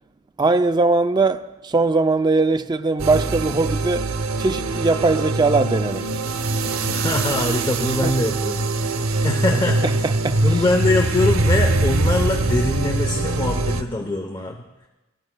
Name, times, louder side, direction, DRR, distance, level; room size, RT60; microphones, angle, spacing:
voice 1, 0.4-4.1 4.4-6.1 8.0-8.1 9.1-10.6, right 3 dB, 20° right, 0.4 m, -21 dB
sound 1, 3.0-13.8, right 2 dB, 90° right, 0.7 m, -22 dB
voice 2, 6.9-9.9 10.4-14.6, left 2 dB, 20° left, 0.7 m, -23 dB
19.5 x 13.0 x 2.2 m
head